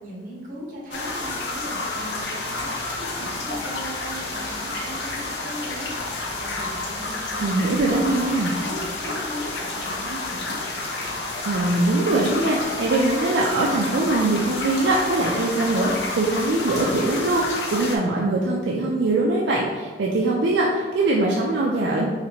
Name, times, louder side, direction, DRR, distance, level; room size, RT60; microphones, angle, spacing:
voice 1, 0.0-5.9 6.4-10.6, equal, 50° right, -4 dB, 1.2 m, -37 dB
sound 1, 0.9-18.0, left 2 dB, 70° left, 0.6 m, -30 dB
voice 2, 7.4-8.5 11.4-15.9 16.2-22.1, right 2 dB, 75° right, -2 dB, 0.4 m, -22 dB
4.1 x 3.2 x 2.9 m, 1.5 s
head